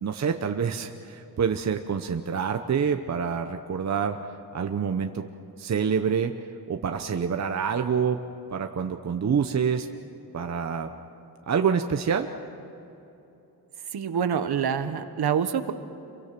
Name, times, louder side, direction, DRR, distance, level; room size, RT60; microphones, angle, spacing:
voice 1, 0.0-5.3 5.6-6.3 6.7-8.2 8.5-9.9 10.3-10.9 11.5-12.3, right 6 dB, 45° right, 6 dB, 0.9 m, -27 dB
voice 2, 13.9-15.7, right 7 dB, 75° right, 9 dB, 1.4 m, -26 dB
28.0 x 23.5 x 6.0 m, 3.0 s
wide cardioid pair, 160°, 39 cm